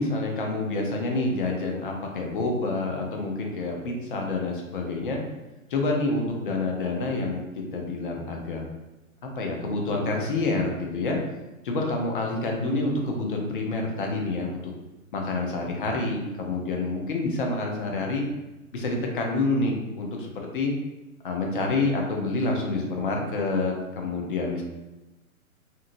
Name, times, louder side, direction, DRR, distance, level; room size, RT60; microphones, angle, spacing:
voice 1, 0.0-5.2 5.7-8.6 9.4-11.2 11.6-14.5 15.1-18.3 18.7-20.7 21.2-24.6, left 2 dB, 40° left, 1 dB, 0.6 m, -28 dB
2.7 x 2.7 x 2.6 m, 1.0 s
figure-of-eight pair, 120°, 42 cm